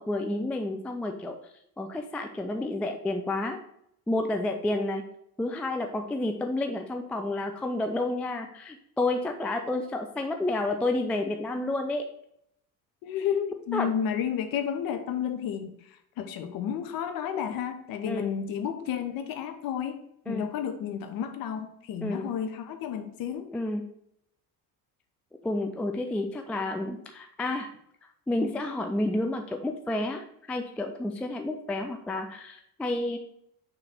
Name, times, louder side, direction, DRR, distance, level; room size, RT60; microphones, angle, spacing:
voice 1, 0.0-1.4 1.8-3.6 4.1-5.0 5.4-12.0 13.7-13.9 18.0-18.2 20.3-20.5 22.0-22.3 23.5-23.8 25.4-27.7 28.3-30.2 30.5-33.2, left 2 dB, 5° left, 4 dB, 0.3 m, -30 dB
voice 2, 13.0-15.7 16.2-20.0 20.3-23.5, left 8 dB, 45° left, 7 dB, 1.0 m, -31 dB
6.4 x 3.1 x 5.7 m, 0.74 s
figure-of-eight pair, 60°, 46 cm